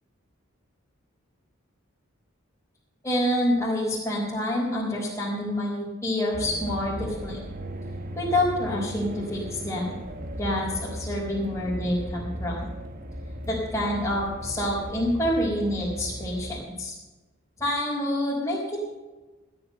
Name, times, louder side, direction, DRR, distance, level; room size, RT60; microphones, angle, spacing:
voice 1, 3.0-7.4 8.2-10.0 10.4-12.7 13.5-16.9 17.6-18.8, left 1 dB, 15° left, -9 dB, 4.1 m, -27 dB
sound 1, 6.3-16.6, equal, 45° right, 1.4 m, -37 dB
14.5 x 9.6 x 6.7 m, 1.1 s
head